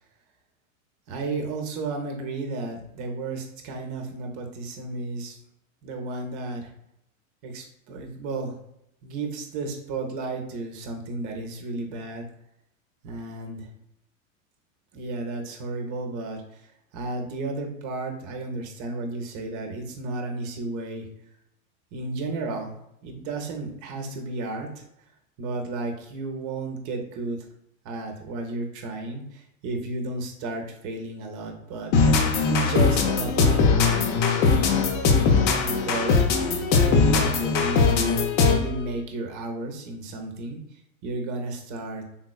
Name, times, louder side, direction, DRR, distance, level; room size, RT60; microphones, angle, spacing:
voice 1, 1.1-5.4 5.8-6.7 7.4-8.6 9.0-12.2 13.0-13.7 14.9-21.1 21.9-22.7 23.0-24.8 25.4-27.5 27.8-32.2 32.5-34.8 35.6-36.5 36.8-38.1 38.4-42.1, right 3 dB, 45° right, 3 dB, 0.7 m, -33 dB
sound 1, 31.9-38.8, left 4 dB, 45° left, 0.6 m, -20 dB
3.5 x 3.0 x 2.3 m, 0.78 s
hypercardioid pair, 105°, 41 cm